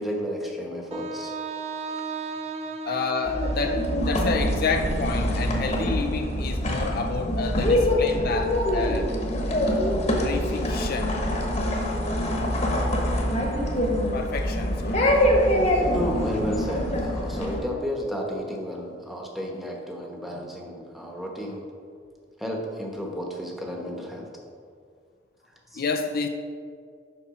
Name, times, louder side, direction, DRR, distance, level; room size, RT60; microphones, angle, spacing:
voice 1, 0.0-1.3 15.8-21.6 22.4-24.3 25.7-25.8, equal, ahead, -1 dB, 1.0 m, -32 dB
Wind instrument woodwind instrument, 0.9-4.9, right 3 dB, 35° right, 0.4 m, -35 dB
voice 2, 2.9-9.1 10.2-11.2 14.1-15.2 25.7-26.3, left 4 dB, 55° left, 6 dB, 0.4 m, -29 dB
sound 1, 3.2-17.6, left 1 dB, 40° left, 1.1 m, -24 dB
7.0 x 5.9 x 4.8 m, 2.2 s
head